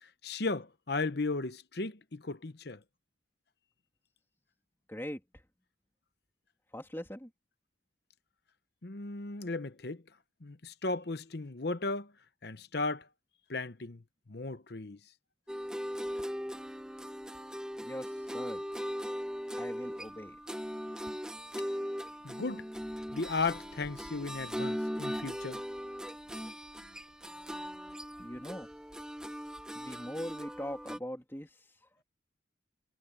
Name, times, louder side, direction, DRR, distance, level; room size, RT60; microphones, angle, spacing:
voice 1, 0.0-2.8 8.8-10.0 10.4-12.1 12.4-13.1 13.5-14.0 14.3-15.0 22.2-22.7 23.1-25.6, left 3 dB, 55° left, 0.9 m, -35 dB
voice 2, 4.9-5.2 6.7-7.3 17.8-18.6 19.6-20.4 28.2-28.7 29.7-31.5 32.0-32.1, equal, 10° left, 2.8 m, -41 dB
sound 1, 15.5-31.0, equal, 5° right, 1.3 m, -39 dB
head